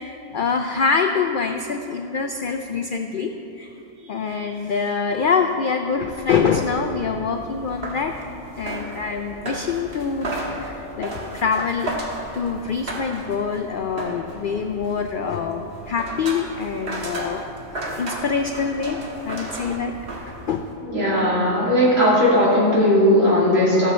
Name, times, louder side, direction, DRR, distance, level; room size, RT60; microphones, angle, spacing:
voice 1, 0.0-8.1 8.6-11.9 12.3-17.4 18.0-19.0 19.2-20.0 20.4-20.7, left 5 dB, 85° left, 5 dB, 0.4 m, -25 dB
sound 1, 5.9-20.8, right 1 dB, 45° right, 1.5 m, -34 dB
voice 2, 20.9-23.9, equal, 65° right, -8 dB, 3.3 m, -17 dB
15.0 x 6.9 x 4.2 m, 2.8 s
omnidirectional pair, 1.5 m